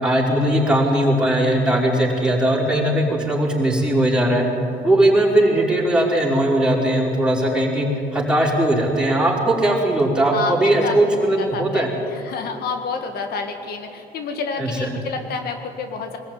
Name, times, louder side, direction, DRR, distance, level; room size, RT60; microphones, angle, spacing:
voice 1, 0.0-4.4 4.8-11.9 14.6-14.9, right 1 dB, 5° right, -4 dB, 5.1 m, -19 dB
voice 2, 10.3-16.2, left 5 dB, 70° left, 5 dB, 1.8 m, -29 dB
22.5 x 14.5 x 9.4 m, 2.8 s
cardioid pair, 110°, 17 cm